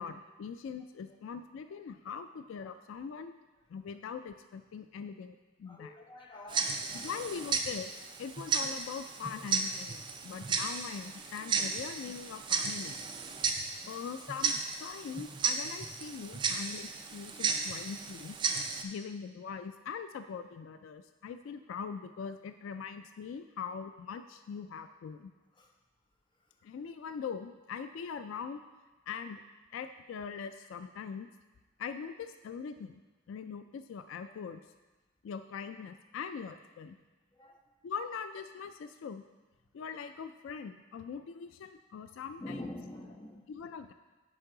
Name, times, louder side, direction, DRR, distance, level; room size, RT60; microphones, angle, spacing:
voice 1, 0.0-3.4 3.7-5.9 6.9-7.9 8.2-13.0 13.9-18.4 18.8-25.3 26.6-28.6 29.1-29.4 29.7-31.3 31.8-33.0 33.3-34.6 35.2-37.0 37.8-39.2 39.7-42.7 43.5-43.9, left 6 dB, 70° left, 9 dB, 0.3 m, -42 dB
voice 2, 5.7-7.1 13.5-14.0 25.6-25.7 37.3-37.6 42.4-43.5, left 1 dB, 20° left, 1 dB, 0.7 m, -46 dB
Tick-tock, 6.5-18.8, right 5 dB, 20° right, 0.3 m, -34 dB
9.1 x 5.5 x 3.8 m, 1.2 s
head